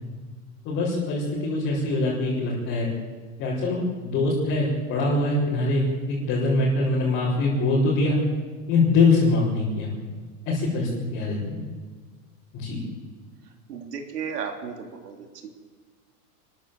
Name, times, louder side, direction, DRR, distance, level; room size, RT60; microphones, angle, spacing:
voice 1, 0.6-2.9 3.4-8.2 8.7-9.9 10.4-11.6 12.5-12.8, left 2 dB, 25° left, -7 dB, 5.1 m, -23 dB
voice 2, 13.7-15.3, right 6 dB, 85° right, 4 dB, 3.4 m, -34 dB
27.5 x 14.0 x 7.8 m, 1.5 s
supercardioid pair, 175°, 47 cm